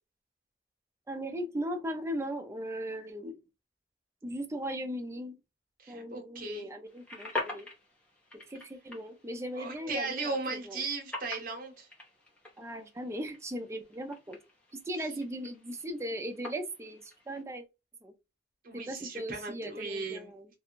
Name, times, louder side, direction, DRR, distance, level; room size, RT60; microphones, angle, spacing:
voice 1, 1.1-3.4 4.2-5.4 5.9-7.7 8.5-10.8 12.6-14.4 14.9-17.6 18.0-18.1 18.7-20.5, equal, 15° right, 0.4 m, -38 dB
voice 2, 5.8-6.7 9.5-11.9 18.6-20.3, right 3 dB, 50° right, 0.9 m, -37 dB
sound 1, 6.9-17.4, left 2 dB, 5° left, 0.8 m, -45 dB
2.4 x 2.2 x 2.9 m
head